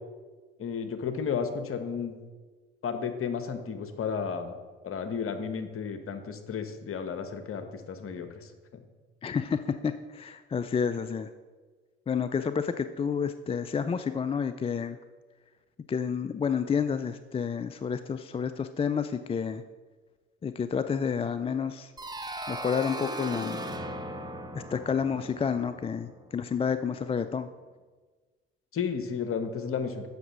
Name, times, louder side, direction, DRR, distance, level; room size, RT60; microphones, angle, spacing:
voice 1, 0.6-2.1 2.8-4.6 4.8-8.8 28.7-30.1, left 6 dB, 45° left, 8 dB, 1.2 m, -33 dB
voice 2, 9.2-11.3 12.1-15.0 15.9-19.6 20.4-21.9 22.5-23.6 24.5-27.5, left 6 dB, 20° left, 11 dB, 0.4 m, -30 dB
sound 1, 22.0-26.6, right 1 dB, 15° right, 1.1 m, -38 dB
7.9 x 6.1 x 5.9 m, 1.4 s
hypercardioid pair, 60°, 30 cm